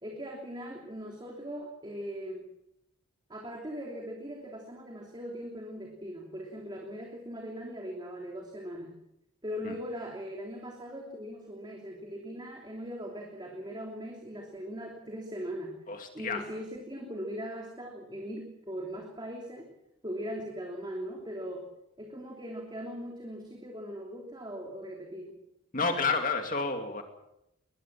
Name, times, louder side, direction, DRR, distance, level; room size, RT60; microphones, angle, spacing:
voice 1, 0.0-2.5 3.3-8.9 9.4-15.7 16.1-19.7 20.0-21.6 22.0-25.4, equal, 20° right, 1 dB, 3.1 m, -40 dB
voice 2, 15.9-16.4 25.7-27.0, left 4 dB, 40° left, 4 dB, 2.4 m, -30 dB
22.5 x 20.0 x 7.4 m, 0.84 s
head